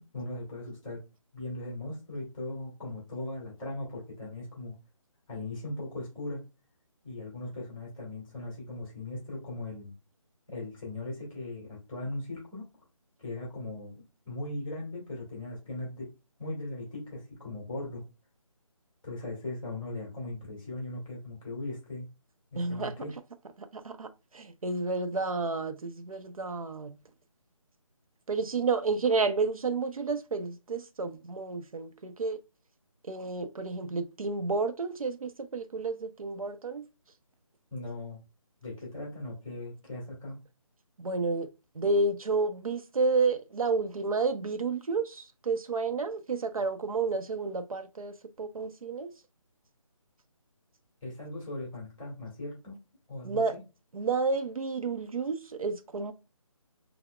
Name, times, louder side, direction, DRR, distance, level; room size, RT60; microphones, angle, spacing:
voice 1, 0.1-1.0 1.3-4.7 5.3-6.4 7.0-9.9 10.5-12.7 13.2-16.1 16.4-18.0 19.0-22.0 22.5-23.1 37.7-38.2 38.6-40.4 51.0-52.8 53.1-53.6, left 2 dB, 10° left, 1.4 m, -38 dB
voice 2, 22.6-22.9 23.6-27.0 28.3-32.4 33.0-36.9 41.0-41.5 41.8-49.1 53.2-53.5 53.9-56.1, right 4 dB, 80° right, 0.6 m, -30 dB
5.8 x 2.0 x 2.2 m
figure-of-eight pair, 160°, 18 cm